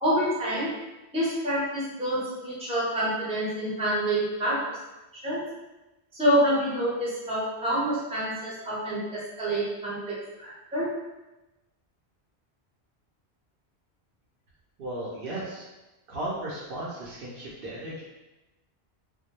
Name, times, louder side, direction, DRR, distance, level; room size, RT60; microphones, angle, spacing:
voice 1, 0.0-0.7 1.1-4.6 5.2-5.4 6.1-10.9, equal, 5° right, -8 dB, 0.6 m, -27 dB
voice 2, 14.8-15.7 16.1-18.0, right 1 dB, 65° right, -6 dB, 0.7 m, -35 dB
2.2 x 2.1 x 2.9 m, 1.0 s
omnidirectional pair, 1.1 m